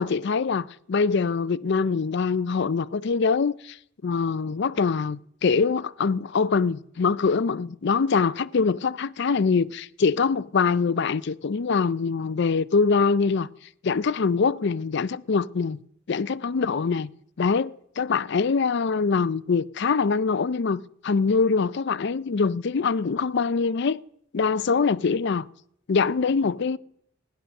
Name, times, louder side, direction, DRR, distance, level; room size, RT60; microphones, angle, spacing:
voice 1, 0.0-3.8 4.0-13.5 13.8-15.8 16.1-17.1 17.4-24.0 24.3-25.5 25.9-26.8, left 5 dB, 55° left, 0.5 m, -24 dB
16.0 x 10.5 x 6.5 m
head